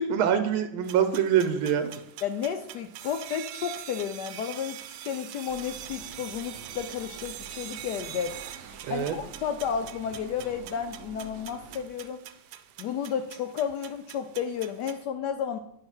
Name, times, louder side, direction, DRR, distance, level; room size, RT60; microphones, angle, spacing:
voice 1, 0.0-1.9 8.8-9.1, right 8 dB, 90° right, 9 dB, 1.5 m, -25 dB
sound 1, 0.8-15.0, right 11 dB, 75° right, 1.2 m, -44 dB
voice 2, 2.2-4.8 5.0-8.4 8.9-12.2 12.8-15.6, left 8 dB, 75° left, 7 dB, 1.0 m, -32 dB
sound 2, 5.5-11.8, right 4 dB, 55° right, 0.8 m, -48 dB
9.6 x 4.0 x 6.1 m, 0.76 s
omnidirectional pair, 2.2 m